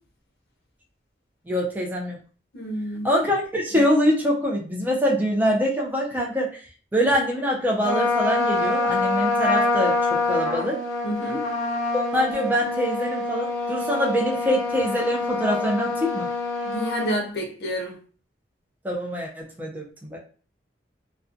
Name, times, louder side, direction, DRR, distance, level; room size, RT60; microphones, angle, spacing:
voice 1, 1.5-2.2 3.0-6.5 6.9-10.0 10.3-10.8 11.9-16.3 18.8-20.2, equal, 10° right, 0.4 m, -24 dB
voice 2, 2.5-3.1 11.0-11.4 16.6-18.0, equal, 65° left, 0.7 m, -29 dB
Trumpet, 7.8-17.2, left 2 dB, 40° left, 0.9 m, -25 dB
2.4 x 2.2 x 2.5 m
head